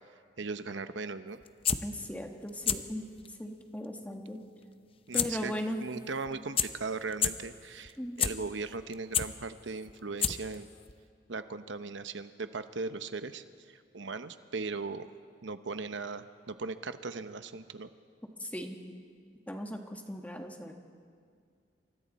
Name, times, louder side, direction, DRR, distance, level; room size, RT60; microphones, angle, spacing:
voice 1, 0.4-1.4 5.1-10.7 11.3-15.1 15.4-17.9, right 4 dB, 85° right, 10 dB, 0.9 m, -38 dB
sound 1, 1.4-1.8 2.5-2.8 3.2-3.3 5.1-5.3 5.6-5.7 6.3-6.4 6.6-6.7 7.1-7.3 7.9-8.3 8.8-9.3 9.9-10.0 10.2-10.6 10.9-11.0, left 8 dB, 30° left, 0.7 m, -27 dB
voice 2, 1.8-3.1 3.4-4.4 5.1-5.8 8.0-8.2 18.4-18.8 19.5-20.7, equal, 10° left, 3 dB, 1.7 m, -38 dB
28.5 x 24.5 x 4.3 m, 2.2 s
head